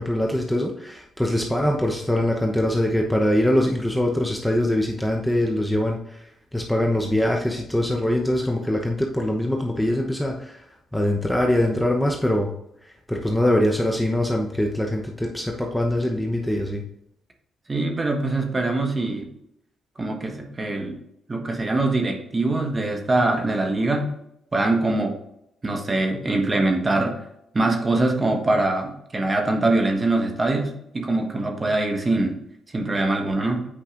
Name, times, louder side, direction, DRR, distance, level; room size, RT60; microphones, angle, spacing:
voice 1, 0.0-6.2 6.5-10.6 10.9-12.5 13.1-16.8, left 1 dB, 5° left, 0 dB, 0.9 m, -23 dB
voice 2, 17.7-19.3 20.0-21.0 21.3-24.1 24.5-25.2 25.6-27.2 27.5-32.4 32.7-33.7, right 2 dB, 25° right, 4 dB, 1.3 m, -23 dB
8.6 x 5.2 x 2.5 m, 0.78 s
cardioid pair, 90°, 0 cm